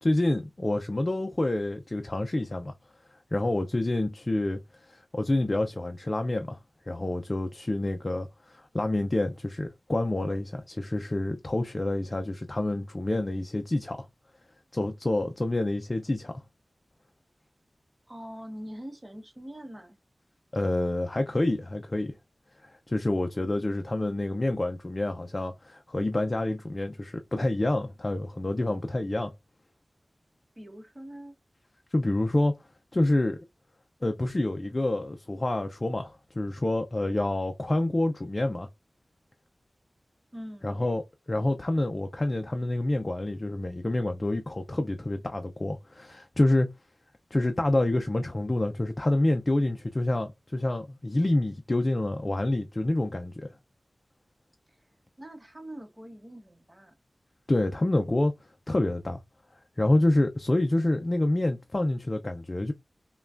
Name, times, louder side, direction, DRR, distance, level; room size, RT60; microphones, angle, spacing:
voice 1, 0.0-2.7 3.3-6.6 6.9-14.1 14.7-16.4 20.5-22.2 22.6-29.3 31.9-32.6 32.9-33.4 34.0-38.7 40.6-41.0 41.3-46.7 47.3-53.5 57.5-58.3 58.7-59.2 59.8-62.7, left 1 dB, 35° left, 0.5 m, -27 dB
voice 2, 18.1-20.0 30.5-31.3 40.3-41.0 54.7-54.9 55.2-56.9, equal, 25° right, 1.3 m, -43 dB
5.5 x 2.3 x 2.5 m
wide cardioid pair, 75°, 0 cm